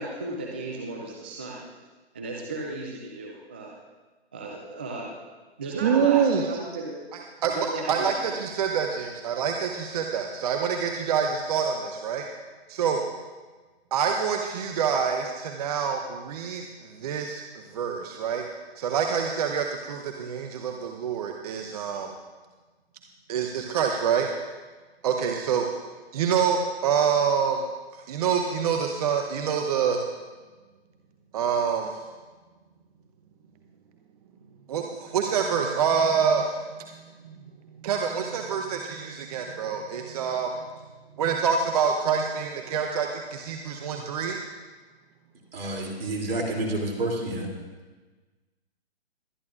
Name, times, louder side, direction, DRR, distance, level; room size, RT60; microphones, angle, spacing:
voice 1, 0.0-1.7 2.1-3.7 4.3-5.1 5.6-6.2 6.5-7.0 7.5-8.1, right 2 dB, 10° right, -1 dB, 0.3 m, -35 dB
voice 2, 5.8-6.5 7.1-12.3 12.7-13.0 13.9-17.4 17.7-18.4 18.8-22.1 23.3-24.3 25.0-25.7 26.1-27.6 27.9-30.0 31.3-31.9 34.7-36.6 37.2-37.3 37.8-40.6 41.2-44.4, right 7 dB, 35° right, 3 dB, 0.8 m, -26 dB
voice 3, 45.5-47.5, right 1 dB, 60° right, 0 dB, 3.0 m, -29 dB
22.0 x 10.5 x 2.5 m, 1.3 s
figure-of-eight pair, 135°, 33 cm